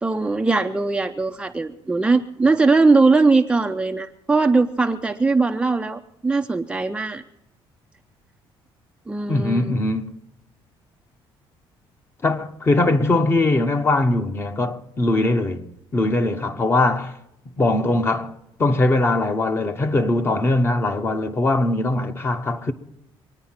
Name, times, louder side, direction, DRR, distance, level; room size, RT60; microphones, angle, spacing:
voice 1, 0.0-7.2 9.1-9.8, right 3 dB, 10° right, 0.6 m, -20 dB
voice 2, 9.3-10.1 12.2-17.2 17.6-18.3 18.6-22.7, left 2 dB, 25° left, 1.1 m, -21 dB
24.0 x 9.6 x 5.8 m
cardioid pair, 150°, 10 cm